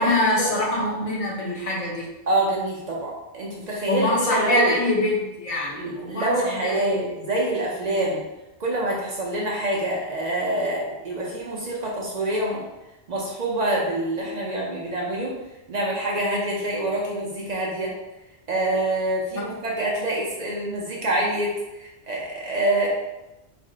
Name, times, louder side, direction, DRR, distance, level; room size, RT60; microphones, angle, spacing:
voice 1, 0.0-2.1 3.9-7.0 19.4-19.5, left 1 dB, 40° left, -4 dB, 0.6 m, -24 dB
voice 2, 2.3-4.7 5.7-8.2 8.6-12.6 13.1-15.3 15.7-17.9 18.5-22.9, right 1 dB, 50° right, -3 dB, 0.5 m, -26 dB
2.5 x 2.1 x 3.7 m, 0.97 s
omnidirectional pair, 1.2 m